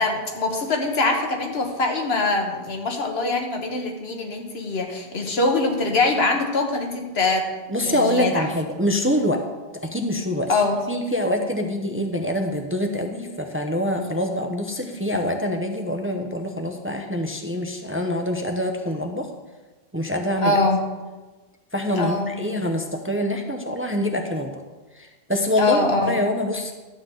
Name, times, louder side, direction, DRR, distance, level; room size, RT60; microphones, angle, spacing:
voice 1, 0.0-7.5 7.8-8.5 10.5-10.8 20.4-20.8 22.0-22.3 25.6-26.2, left 3 dB, 85° left, 3 dB, 1.4 m, -23 dB
voice 2, 7.7-9.4 9.8-10.6 10.9-19.3 19.9-20.6 21.7-24.6 24.9-26.7, left 1 dB, 15° right, 3 dB, 0.6 m, -25 dB
11.5 x 3.9 x 7.6 m, 1.3 s
omnidirectional pair, 1.0 m